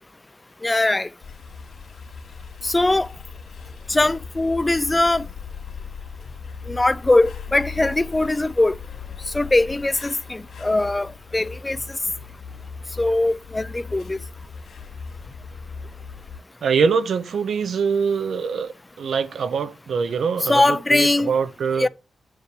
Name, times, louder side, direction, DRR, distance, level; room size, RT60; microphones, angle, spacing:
voice 1, 0.6-1.1 2.6-3.1 3.9-5.3 6.7-8.7 9.3-11.8 13.0-14.2 20.4-21.3 21.8-21.9, left 2 dB, 15° left, 0.3 m, -21 dB
sound 1, 1.2-16.4, left 5 dB, 80° left, 2.3 m, -38 dB
voice 2, 16.6-21.9, right 6 dB, 70° right, 0.7 m, -23 dB
9.6 x 3.3 x 6.6 m
wide cardioid pair, 170°, 0 cm